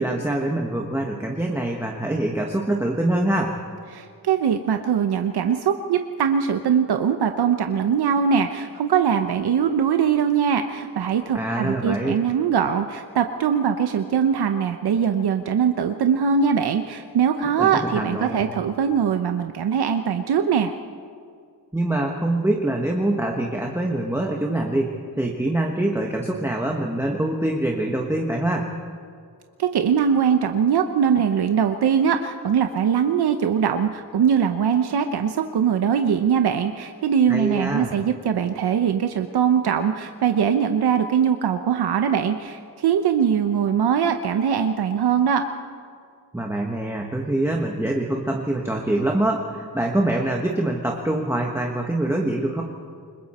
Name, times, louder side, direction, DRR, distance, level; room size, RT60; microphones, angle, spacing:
voice 1, 0.0-3.6 11.3-12.2 17.6-18.4 21.7-28.7 37.3-37.9 46.3-52.6, right 1 dB, 5° right, 0 dB, 1.2 m, -24 dB
voice 2, 3.9-20.7 29.6-45.4, right 7 dB, 75° right, 6 dB, 0.9 m, -21 dB
29.0 x 20.5 x 4.3 m, 2.3 s
wide cardioid pair, 175°, 39 cm